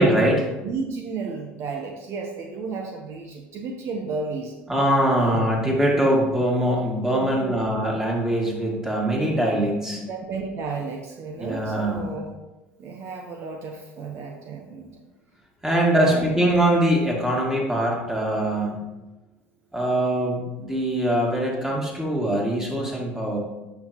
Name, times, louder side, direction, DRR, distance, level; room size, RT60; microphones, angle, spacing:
voice 1, 0.0-0.5 4.7-10.0 11.4-12.0 15.6-18.8 19.7-23.4, right 1 dB, 10° right, -2 dB, 2.3 m, -22 dB
voice 2, 0.6-4.5 5.2-5.5 7.2-7.6 10.0-12.3 12.8-15.1 15.8-16.3, right 4 dB, 55° right, 2 dB, 0.9 m, -33 dB
9.3 x 6.1 x 2.9 m, 1.1 s
supercardioid pair, 85°, 5 cm